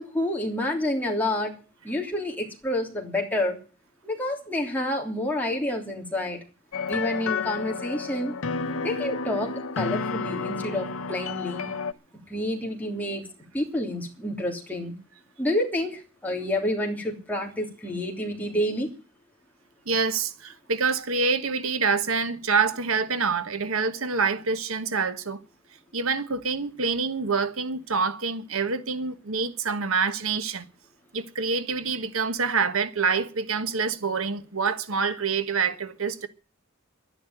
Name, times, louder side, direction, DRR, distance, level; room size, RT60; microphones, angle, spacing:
voice 1, 0.0-1.5 1.8-3.6 4.0-6.4 6.9-8.3 8.8-11.7 12.3-13.3 13.5-14.9 15.4-18.9, left 1 dB, 10° left, 3.2 m, -28 dB
sound 1, 6.7-11.9, left 4 dB, 75° left, 0.8 m, -31 dB
voice 2, 19.9-25.4 25.9-30.7 31.1-36.3, right 5 dB, 80° right, 1.3 m, -26 dB
11.5 x 10.5 x 9.1 m
head